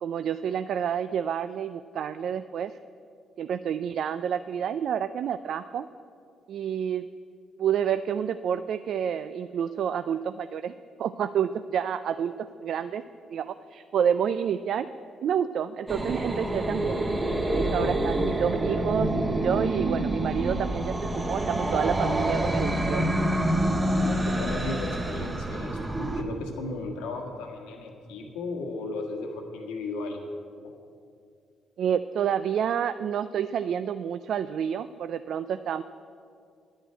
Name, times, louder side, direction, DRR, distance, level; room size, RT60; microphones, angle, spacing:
voice 1, 0.0-2.7 3.4-5.9 6.5-7.1 7.6-10.7 11.0-13.0 13.3-14.9 15.2-17.0 17.5-19.1 19.4-23.1 31.8-35.8, right 8 dB, 70° right, 12 dB, 0.3 m, -29 dB
sound 1, 15.9-26.2, right 1 dB, 25° right, 1.5 m, -27 dB
voice 2, 24.0-30.2 30.6-30.7, left 3 dB, 90° left, 3 dB, 1.5 m, -35 dB
9.9 x 7.9 x 8.9 m, 2.4 s
supercardioid pair, 60°, 0 cm